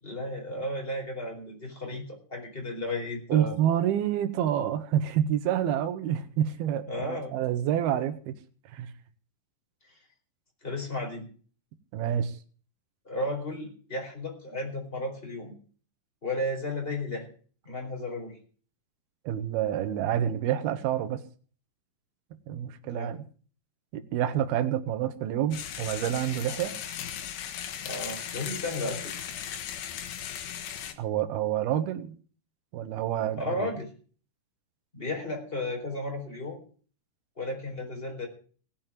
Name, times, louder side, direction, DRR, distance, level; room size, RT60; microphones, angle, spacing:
voice 1, 0.0-3.6 6.9-7.3 10.6-11.2 13.0-15.5 16.2-17.2 17.6-18.4 22.8-23.1 27.8-29.1 33.4-33.9 34.9-36.6 37.4-38.3, left 1 dB, 15° left, 1 dB, 4.3 m, -34 dB
voice 2, 3.3-8.3 8.7-8.9 11.9-12.4 19.3-21.2 22.5-23.2 23.9-26.7 31.0-32.1 32.7-33.7, right 10 dB, 75° right, 8 dB, 3.1 m, -28 dB
sound 1, 25.5-30.9, left 9 dB, 70° left, 3.0 m, -37 dB
17.5 x 7.3 x 7.5 m, 0.42 s
omnidirectional pair, 4.5 m